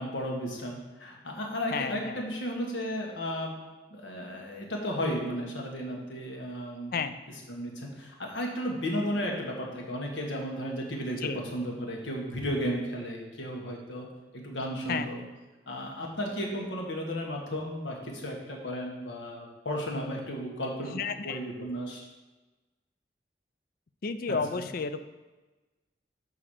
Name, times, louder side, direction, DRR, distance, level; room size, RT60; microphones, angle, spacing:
voice 1, 0.0-3.6 3.9-6.9 7.5-14.1 14.3-15.2 15.7-22.1 24.3-24.7, equal, 90° left, 0 dB, 1.6 m, -34 dB
voice 2, 1.7-2.2 6.9-7.2 11.2-11.4 14.9-15.1 20.9-21.4 24.0-25.1, left 5 dB, 50° left, 10 dB, 0.4 m, -32 dB
5.9 x 4.7 x 6.5 m, 1.2 s
head